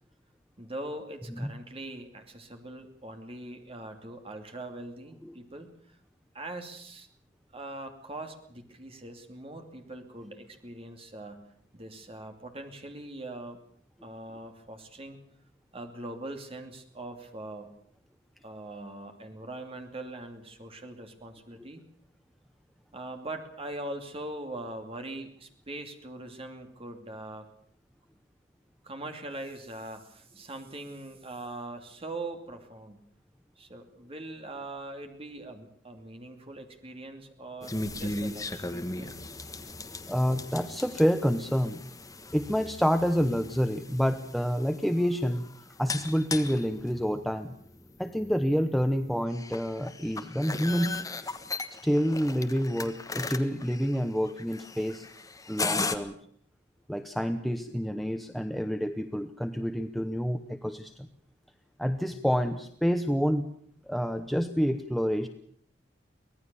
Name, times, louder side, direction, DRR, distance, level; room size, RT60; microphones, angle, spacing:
voice 1, 0.6-6.0 6.3-7.1 7.5-11.5 11.7-13.6 14.0-15.2 15.7-17.7 18.4-21.8 22.9-27.5 28.8-33.0 33.6-39.2, right 2 dB, 30° right, 5 dB, 2.7 m, -42 dB
sound 1, 37.6-56.0, left 3 dB, 20° left, 1.5 m, -38 dB
voice 2, 40.1-41.8 42.3-45.5 45.8-47.5 48.0-51.0 51.8-55.1 55.5-56.1 56.9-61.1 61.8-63.4 63.9-65.3, equal, ahead, 7 dB, 0.9 m, -28 dB
24.5 x 17.5 x 7.0 m, 0.63 s
head